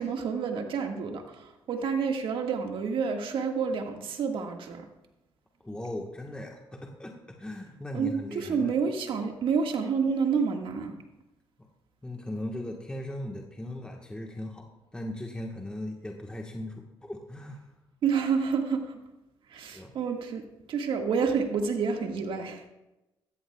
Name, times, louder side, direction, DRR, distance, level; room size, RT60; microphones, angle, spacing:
voice 1, 0.0-4.9 7.9-10.9 18.0-19.0 19.5-22.6, right 5 dB, 70° right, 3 dB, 1.7 m, -29 dB
voice 2, 5.6-8.8 12.0-14.7 14.9-17.6 19.7-19.9, left 1 dB, 10° left, 1 dB, 1.3 m, -38 dB
16.0 x 14.0 x 2.3 m, 0.98 s
cardioid pair, 90°, 9 cm